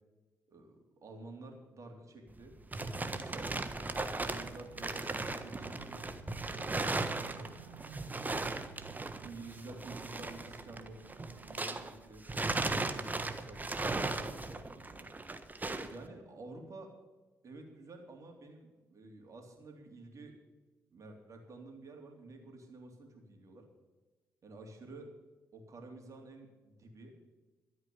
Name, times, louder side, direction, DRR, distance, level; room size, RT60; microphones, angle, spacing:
voice 1, 0.5-6.1 6.5-7.5 9.2-11.0 11.5-12.2 12.8-15.1 15.9-16.9 17.4-20.4 20.9-23.7 24.4-25.1 25.5-27.1, right 2 dB, 50° right, 3 dB, 3.4 m, -50 dB
sound 1, 2.3-11.9 12.2-16.0, right 2 dB, 25° right, 1.3 m, -37 dB
sound 2, 4.5-14.9, right 7 dB, 80° right, 1.0 m, -56 dB
13.0 x 8.8 x 8.7 m, 1.2 s
hypercardioid pair, 45°, 7 cm